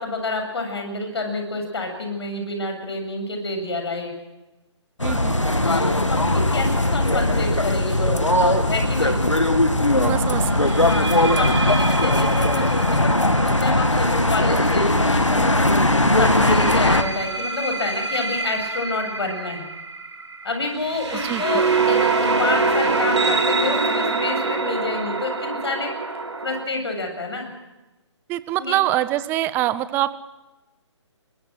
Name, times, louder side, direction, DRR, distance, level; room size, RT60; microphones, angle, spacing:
voice 1, 0.0-4.1 5.6-9.2 10.9-15.6 16.2-19.7 20.4-27.5 28.6-28.8, left 2 dB, 60° left, 4 dB, 7.6 m, -28 dB
sound 1, 5.0-17.0, left 1 dB, 90° left, 2.4 m, -19 dB
voice 2, 5.0-5.4 10.0-10.5 10.8-10.9 21.1-21.6 28.3-30.1, right 14 dB, 15° right, 16 dB, 0.7 m, -24 dB
sound 2, 8.8-9.1 10.6-15.4 16.2-26.6, right 3 dB, 70° right, 3.1 m, -25 dB
22.5 x 22.5 x 6.4 m, 1.1 s
figure-of-eight pair, 140°, 15 cm